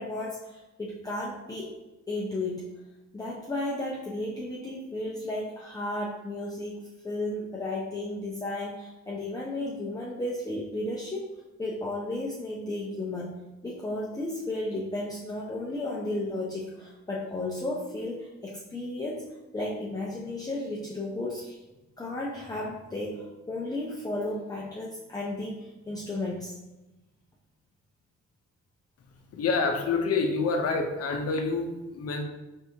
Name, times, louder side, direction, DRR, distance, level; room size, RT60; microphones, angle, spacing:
voice 1, 0.0-1.7 2.1-2.7 3.1-11.3 11.6-13.4 13.6-21.6 22.0-26.5, left 2 dB, 10° left, -5 dB, 0.6 m, -34 dB
voice 2, 29.3-32.2, left 4 dB, 55° left, 4 dB, 0.7 m, -27 dB
4.1 x 3.5 x 2.8 m, 1.0 s
cardioid pair, 90°, 30 cm